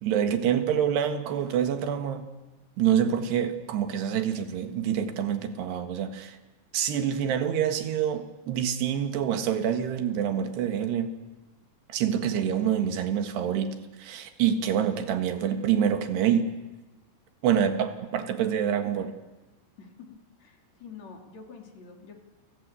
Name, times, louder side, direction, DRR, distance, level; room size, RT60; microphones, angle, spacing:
voice 1, 0.0-2.3 2.8-6.4 6.7-11.1 11.9-16.5 17.4-19.1, right 9 dB, 80° right, 7 dB, 3.8 m, -26 dB
voice 2, 19.8-22.1, left 5 dB, 45° left, 2 dB, 4.1 m, -47 dB
30.0 x 17.5 x 8.4 m, 1.1 s
omnidirectional pair, 4.7 m